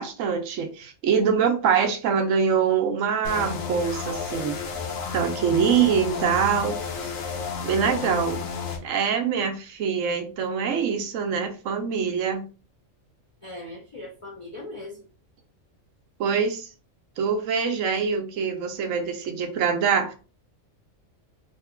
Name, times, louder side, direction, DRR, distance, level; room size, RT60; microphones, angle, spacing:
voice 1, 0.0-4.6 5.1-6.8 7.0-7.1 7.6-8.5 8.8-12.5 16.2-16.7 17.2-20.1, right 6 dB, 75° right, 1.0 m, -24 dB
sound 1, 3.2-8.8, left 5 dB, 80° left, 1.1 m, -31 dB
voice 2, 13.4-15.1, left 2 dB, 55° left, 0.3 m, -39 dB
3.1 x 2.2 x 3.5 m
omnidirectional pair, 1.4 m